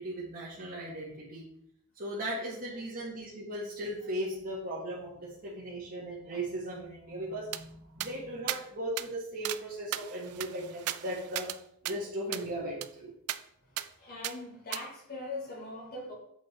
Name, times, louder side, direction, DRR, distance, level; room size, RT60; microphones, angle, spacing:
voice 1, 0.0-1.4 1.9-11.5 11.8-13.1, right 1 dB, 45° right, -8 dB, 1.9 m, -37 dB
sound 1, 7.5-7.6 8.0-8.1 8.5-8.6 9.0-9.1 9.4-9.6 9.9-11.6 11.8-12.0 12.3-12.5 12.8-12.9 13.3-13.4 13.8-13.9 14.2-14.3 14.7-14.8, right 13 dB, 80° right, 0.4 m, -36 dB
voice 2, 13.6-16.1, left 2 dB, 45° left, -4 dB, 3.1 m, -41 dB
7.9 x 5.2 x 4.5 m, 0.73 s
head